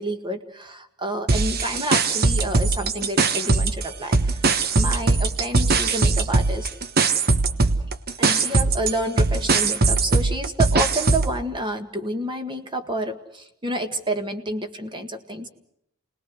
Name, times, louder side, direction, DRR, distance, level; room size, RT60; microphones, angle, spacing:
voice 1, 0.0-4.5 4.7-6.7 8.2-15.5, right 1 dB, 20° right, 6 dB, 1.8 m, -29 dB
sound 1, 1.3-3.8 4.1-11.4, right 3 dB, 45° right, 1.2 m, -20 dB
29.0 x 20.0 x 6.4 m, 0.76 s
head